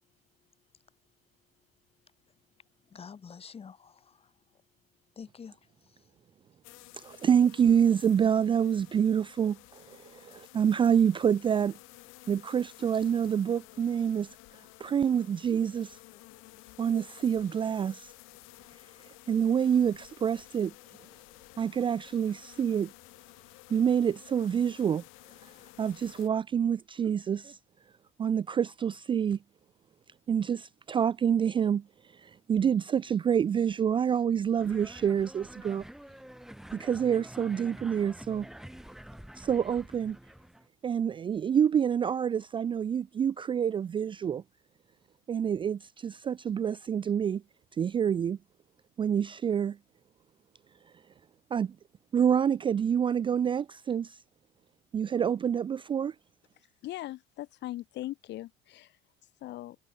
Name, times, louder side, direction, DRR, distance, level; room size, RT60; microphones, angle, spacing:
voice 1, 2.9-4.3 5.2-6.0, left 6 dB, 30° left, 7.3 m, -48 dB
sound 1, 6.6-26.3, left 25 dB, 80° left, 1.9 m, -53 dB
voice 2, 7.0-11.8 12.3-14.3 14.8-16.0 16.8-18.1 19.3-20.7 21.6-22.9 23.7-25.0 25.8-27.6 28.2-29.4 30.3-31.8 32.1-35.8 36.7-38.5 39.4-40.2 40.8-44.4 45.3-47.4 47.8-48.4 49.0-49.8 51.5-51.8 52.1-54.2 54.9-56.1, right 8 dB, 25° right, 0.4 m, -27 dB
sound 2, 34.6-40.7, equal, ahead, 3.3 m, -48 dB
voice 3, 56.6-59.8, left 15 dB, 60° left, 2.6 m, -41 dB
cardioid pair, 130°, 20 cm